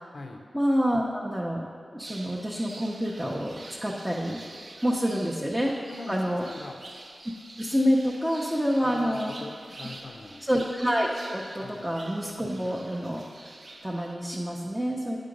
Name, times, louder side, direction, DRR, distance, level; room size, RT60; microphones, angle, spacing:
voice 1, 0.5-1.6 1.9-5.7 6.1-6.4 7.6-9.3 10.4-13.2 13.8-15.2, equal, 5° right, -3 dB, 0.6 m, -27 dB
sound 1, 2.0-14.2, right 2 dB, 50° right, 0.6 m, -47 dB
voice 2, 5.9-6.8 8.8-10.5 11.6-11.9 12.5-12.7, left 2 dB, 60° left, 3 dB, 0.5 m, -41 dB
10.5 x 3.8 x 5.2 m, 2.2 s
wide cardioid pair, 110°, 0 cm